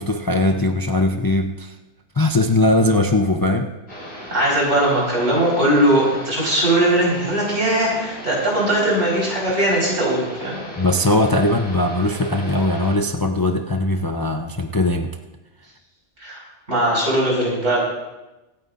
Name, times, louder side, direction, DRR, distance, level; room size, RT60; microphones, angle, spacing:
voice 1, 0.0-1.7 2.2-3.7 10.8-15.1, left 1 dB, 25° left, 4 dB, 0.5 m, -20 dB
sound 1, 3.9-13.0, equal, 55° left, 5.2 m, -36 dB
voice 2, 4.3-10.6 16.2-16.4 16.7-17.8, right 1 dB, 80° right, -4 dB, 4.8 m, -19 dB
24.0 x 9.3 x 2.5 m, 1.0 s
omnidirectional pair, 1.2 m